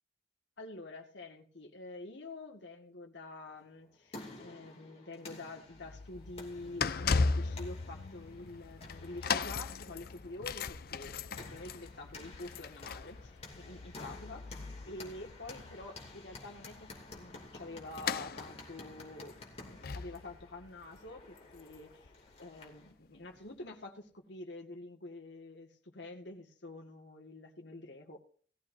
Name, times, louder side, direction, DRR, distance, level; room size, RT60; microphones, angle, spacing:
voice 1, 0.6-22.1 22.4-28.2, left 2 dB, 70° left, 3 dB, 2.0 m, -47 dB
sound 1, 3.7-22.9, left 2 dB, 35° left, 2.7 m, -52 dB
sound 2, 5.7-22.7 23.3-23.4, left 4 dB, 50° left, 0.5 m, -38 dB
19.0 x 14.0 x 2.7 m, 0.43 s
head